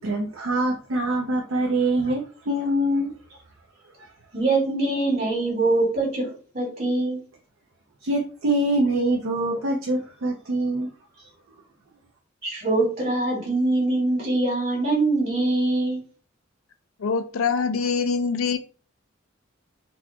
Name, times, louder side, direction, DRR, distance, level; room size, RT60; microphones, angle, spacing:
voice 1, 0.0-3.1 4.0-4.1 8.0-10.9, right 1 dB, 75° right, 0 dB, 0.7 m, -24 dB
voice 2, 4.3-7.2 12.4-16.0, right 2 dB, 50° right, -3 dB, 1.7 m, -23 dB
voice 3, 17.0-18.6, left 5 dB, 90° left, 9 dB, 0.5 m, -24 dB
4.0 x 2.4 x 2.8 m, 0.39 s
head